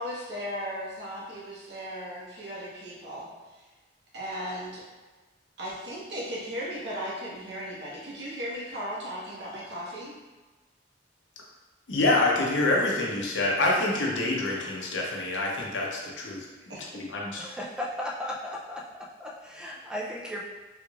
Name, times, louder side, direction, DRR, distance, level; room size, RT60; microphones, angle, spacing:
voice 1, 0.0-3.6 4.1-4.8 5.6-10.1 16.7-16.8, equal, 60° right, -7 dB, 1.0 m, -36 dB
voice 2, 11.9-16.4 16.9-17.4, left 2 dB, 75° left, -2 dB, 0.7 m, -26 dB
voice 3, 17.4-18.8 19.2-20.4, left 1 dB, 5° right, -3 dB, 0.4 m, -35 dB
3.5 x 3.1 x 2.3 m, 1.2 s
head